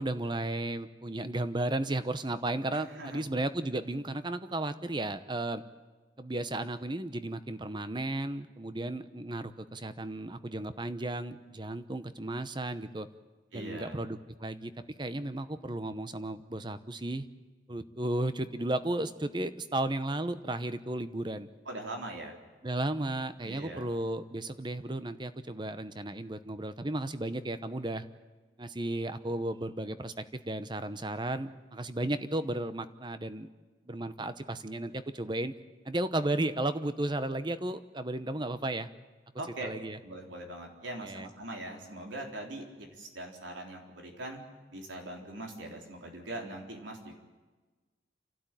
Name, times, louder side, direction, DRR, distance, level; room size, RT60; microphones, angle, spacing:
voice 1, 0.0-5.6 6.2-13.1 13.5-14.7 15.0-17.3 17.7-21.5 22.6-28.0 28.6-33.5 33.9-35.5 35.8-38.9 39.6-40.0 41.0-41.3, right 1 dB, 25° right, 12 dB, 0.9 m, -34 dB
voice 2, 2.7-3.2 13.5-14.0 21.7-22.4 23.4-24.0 39.4-39.7 40.0-44.4 44.7-47.2, right 1 dB, 90° right, 2 dB, 4.0 m, -41 dB
29.5 x 12.5 x 9.1 m, 1.3 s
head